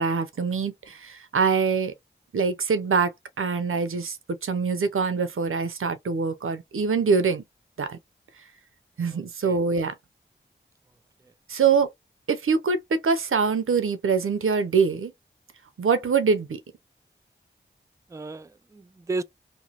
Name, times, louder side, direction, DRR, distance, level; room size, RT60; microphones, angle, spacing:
voice 1, 0.0-1.9 2.3-4.2 4.4-7.4 7.8-8.0 9.0-10.0 11.5-11.9 12.3-15.1 15.8-16.6, right 5 dB, 80° right, 0.6 m, -24 dB
voice 2, 9.1-9.6 18.1-19.2, right 3 dB, 15° right, 0.3 m, -34 dB
3.0 x 2.1 x 2.8 m
cardioid pair, 40°, 21 cm